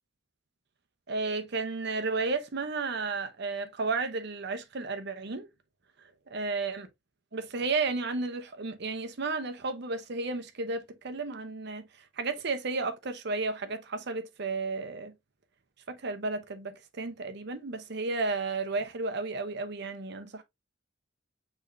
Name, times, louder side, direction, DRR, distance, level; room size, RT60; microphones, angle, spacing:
voice 1, 1.1-5.5 6.3-6.9 7.3-15.1 15.9-20.4, right 3 dB, 60° right, 0.8 m, -33 dB
6.2 x 3.3 x 2.6 m
head